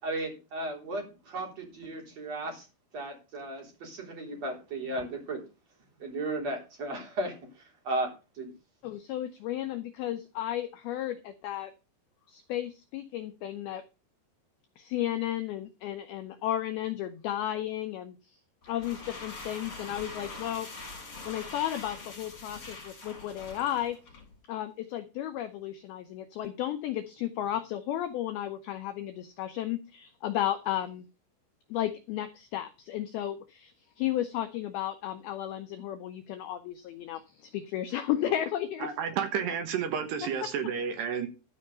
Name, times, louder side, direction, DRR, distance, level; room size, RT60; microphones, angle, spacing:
voice 1, 0.0-2.7 2.9-5.4 6.0-7.3 7.8-8.1 8.4-8.5, right 2 dB, 35° right, 1 dB, 4.1 m, -35 dB
voice 2, 8.8-11.7 12.3-13.8 14.8-18.2 18.7-24.0 24.5-31.1 31.7-38.9, left 12 dB, 85° left, 9 dB, 2.2 m, -33 dB
sound 1, 18.6-24.3, left 3 dB, 30° left, 4.6 m, -44 dB
voice 3, 38.8-41.3, right 7 dB, 70° right, 7 dB, 3.3 m, -31 dB
13.0 x 5.4 x 6.7 m, 0.30 s
omnidirectional pair, 5.4 m